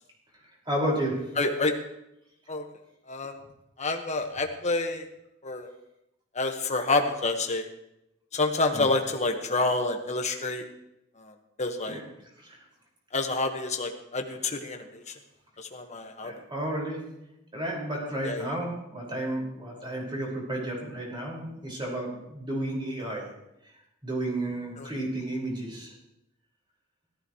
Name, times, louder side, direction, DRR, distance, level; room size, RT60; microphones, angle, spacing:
voice 1, 0.7-1.3 8.7-8.9 11.9-12.1 12.4-12.6 16.2-17.0 17.5-23.3 24.0-25.9, right 1 dB, 25° right, -3 dB, 5.4 m, -32 dB
voice 2, 1.4-1.7 2.5-2.6 3.1-3.4 3.8-5.0 5.4-5.7 6.3-7.7 8.3-10.6 11.2-12.0 13.1-15.1 15.6-16.3 18.2-18.5 24.8-24.9, left 3 dB, 35° left, 4 dB, 1.5 m, -28 dB
17.5 x 14.5 x 3.2 m, 0.85 s
head